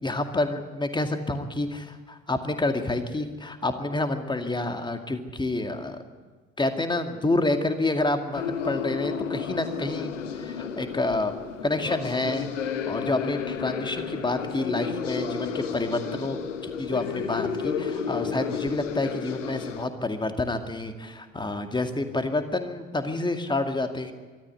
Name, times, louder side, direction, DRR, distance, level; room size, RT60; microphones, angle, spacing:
voice 1, 0.0-6.0 6.6-11.3 11.6-12.5 12.9-16.4 16.8-24.1, left 2 dB, 10° left, 7 dB, 2.1 m, -28 dB
sound 1, 8.3-19.9, left 6 dB, 75° left, 1.3 m, -32 dB
23.0 x 13.5 x 9.7 m, 1.4 s
figure-of-eight pair, 60°, 37 cm